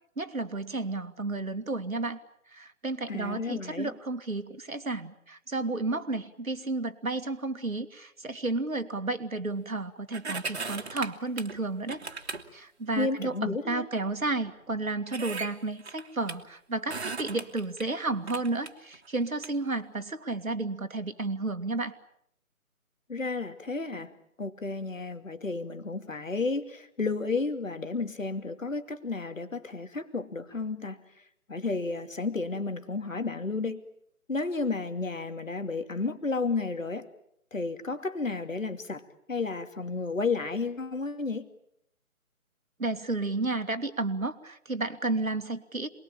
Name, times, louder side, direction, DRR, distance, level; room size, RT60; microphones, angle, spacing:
voice 1, 0.2-2.2 2.5-12.0 12.5-21.9 42.8-45.9, right 2 dB, 70° right, 2.4 m, -32 dB
voice 2, 3.1-3.9 13.0-13.9 23.1-24.1 24.4-31.0 31.5-33.8 34.3-37.1 37.5-39.0 39.3-41.5, left 3 dB, 65° left, 2.6 m, -32 dB
sound 1, 10.1-11.6 11.9-12.4 13.2-13.3 14.1-14.2 14.5-14.6 15.1-16.3 16.9-17.8 18.3-19.5 20.0-20.1, right 4 dB, 50° right, 2.5 m, -37 dB
28.0 x 21.0 x 8.9 m
figure-of-eight pair, 150°, 43 cm